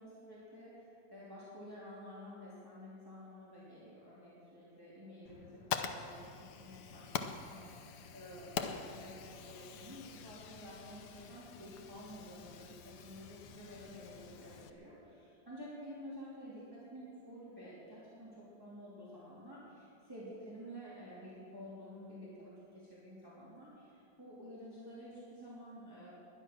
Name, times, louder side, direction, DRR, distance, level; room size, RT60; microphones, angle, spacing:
voice 1, 0.0-7.1 7.4-26.1, equal, 10° right, -9 dB, 3.3 m, -51 dB
Fire, 5.3-14.7, left 7 dB, 65° left, 1.3 m, -45 dB
21.0 x 10.5 x 6.1 m, 2.6 s
omnidirectional pair, 2.0 m